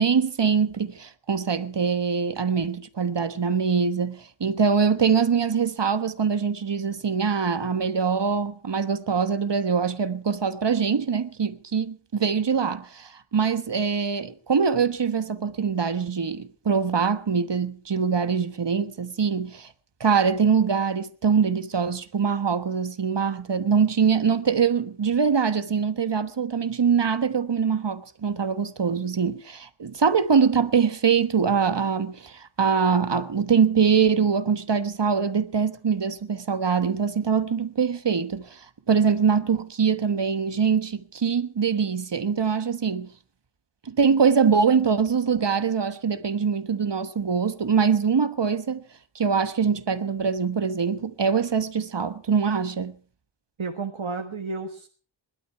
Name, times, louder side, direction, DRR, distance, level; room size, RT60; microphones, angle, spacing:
voice 1, 0.0-19.7 20.0-43.1 43.8-48.8 49.1-52.9, right 6 dB, 60° right, 1.3 m, -23 dB
voice 2, 53.6-54.9, right 4 dB, 80° right, 1.6 m, -32 dB
20.5 x 12.0 x 4.6 m
wide cardioid pair, 65°, 47 cm